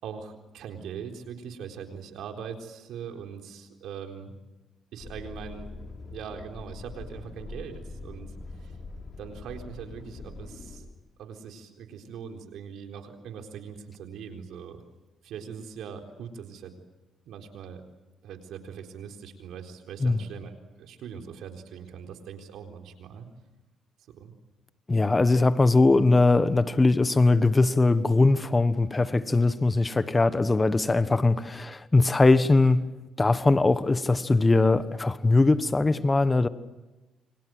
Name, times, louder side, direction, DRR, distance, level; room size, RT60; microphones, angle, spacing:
voice 1, 0.0-4.4 4.9-5.7 6.0-8.3 8.6-8.8 9.2-10.9 11.2-14.8 15.2-16.7 17.2-17.8 18.2-23.3 24.1-24.4, right 7 dB, 80° right, 4.0 m, -41 dB
sound 1, 5.0-10.8, left 3 dB, 50° left, 6.8 m, -43 dB
voice 2, 24.9-36.5, left 3 dB, 20° left, 1.3 m, -21 dB
28.5 x 25.5 x 7.8 m
cardioid pair, 90°, 0 cm